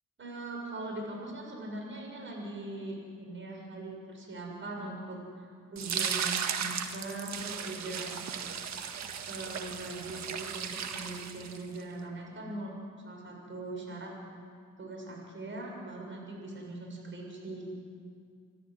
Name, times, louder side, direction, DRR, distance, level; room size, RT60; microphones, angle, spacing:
voice 1, 0.2-8.1 9.3-12.7 13.0-14.1 14.8-17.7, right 2 dB, 40° right, 0 dB, 7.3 m, -41 dB
sound 1, 5.8-11.8, right 7 dB, 65° right, 1.8 m, -36 dB
27.5 x 12.5 x 10.0 m, 2.2 s
cardioid pair, 90°, 30 cm